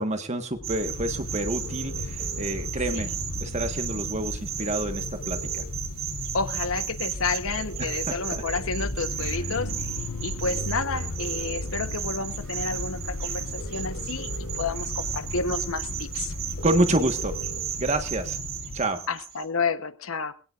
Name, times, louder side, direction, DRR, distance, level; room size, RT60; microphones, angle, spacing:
voice 1, 0.0-3.1 3.4-5.4 7.8-8.4 16.6-17.4 17.8-18.4 18.7-19.0, right 1 dB, 30° right, 7 dB, 1.5 m, -28 dB
sound 1, 0.5-18.9, left 2 dB, 90° left, 1.3 m, -36 dB
sound 2, 0.6-19.4, right 8 dB, 80° right, 6.2 m, -35 dB
sound 3, 1.6-2.6 4.6-5.6 7.6-8.6 10.6-11.6 13.6-14.6 16.6-17.6, right 3 dB, 50° left, 3.3 m, -43 dB
voice 2, 6.3-9.9 10.2-16.3 19.1-20.3, left 4 dB, 75° left, 11 dB, 1.1 m, -30 dB
21.5 x 17.0 x 2.6 m, 0.38 s
head